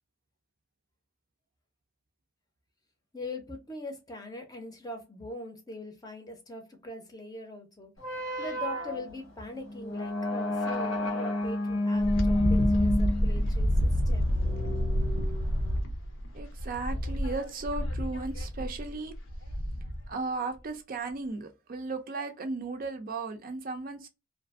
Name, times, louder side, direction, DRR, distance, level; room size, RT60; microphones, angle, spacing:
voice 1, 3.1-7.9 8.4-14.3, left 2 dB, 20° left, 0.6 m, -41 dB
sound 1, 8.0-15.8, left 1 dB, 85° left, 1.2 m, -30 dB
Wind, 12.0-20.1, equal, 70° left, 0.7 m, -29 dB
voice 2, 16.3-19.1 20.1-24.1, right 3 dB, 45° right, 0.4 m, -35 dB
2.5 x 2.5 x 2.4 m
head